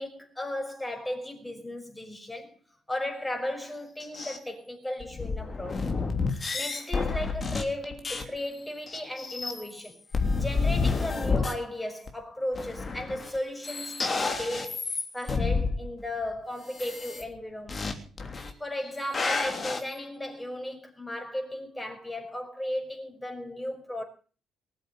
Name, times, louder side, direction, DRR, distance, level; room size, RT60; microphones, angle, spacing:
voice 1, 0.0-2.6 2.9-5.9 6.5-14.8 15.1-18.0 18.6-24.0, left 1 dB, 10° left, 5.4 m, -35 dB
sound 1, 4.0-4.4 5.0-8.4 8.9-9.9 10.1-11.5 12.1-12.2 12.5-13.4 13.6-15.8 16.7-17.2 17.7-17.9 18.2-18.5 18.8-19.8, left 4 dB, 35° left, 3.1 m, -29 dB
19.5 x 7.7 x 7.8 m
hypercardioid pair, 50°, 0 cm